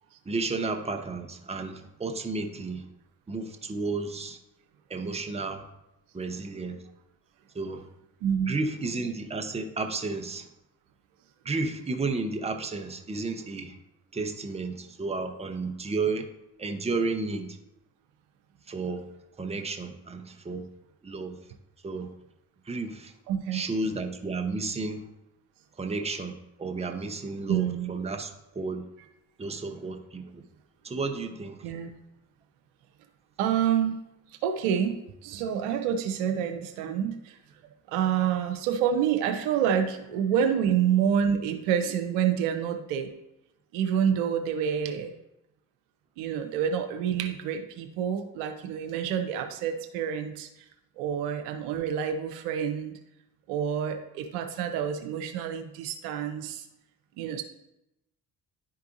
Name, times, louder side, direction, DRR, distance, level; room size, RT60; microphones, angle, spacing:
voice 1, 0.3-2.9 3.3-4.4 4.9-5.6 6.1-6.8 7.5-7.9 8.5-10.5 11.4-13.8 14.1-16.3 16.6-17.6 18.7-19.1 19.4-20.6 21.0-21.4 21.8-22.1 22.7-23.1 23.5-25.1 25.8-28.8 29.4-30.4 30.8-31.7, right 3 dB, 15° right, 5 dB, 0.8 m, -32 dB
voice 2, 8.2-8.6 23.3-23.6 27.5-27.9 31.6-31.9 33.4-34.0 34.4-35.0 35.2-37.4 37.9-43.1 43.7-45.1 46.2-50.5 51.0-53.0 53.5-56.7 57.2-57.4, right 8 dB, 65° right, 6 dB, 0.7 m, -28 dB
10.5 x 4.6 x 2.6 m, 0.89 s
figure-of-eight pair, 40°, 48 cm